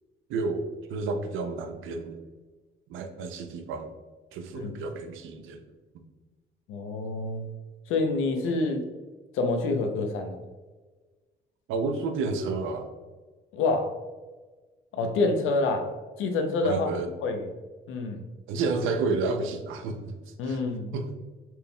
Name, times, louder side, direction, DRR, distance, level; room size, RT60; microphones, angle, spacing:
voice 1, 0.3-2.2 2.9-3.9 4.3-5.6 11.7-12.9 16.6-17.1 18.5-20.6 20.9-21.2, right 3 dB, 90° right, 7 dB, 0.5 m, -31 dB
voice 2, 6.7-7.5 7.9-8.8 9.3-10.4 13.5-13.9 14.9-15.9 16.2-16.9 17.2-17.5 17.9-18.2 20.4-20.9, left 3 dB, 90° left, 5 dB, 0.6 m, -27 dB
4.2 x 3.5 x 2.2 m, 1.3 s
cardioid pair, 90°, 20 cm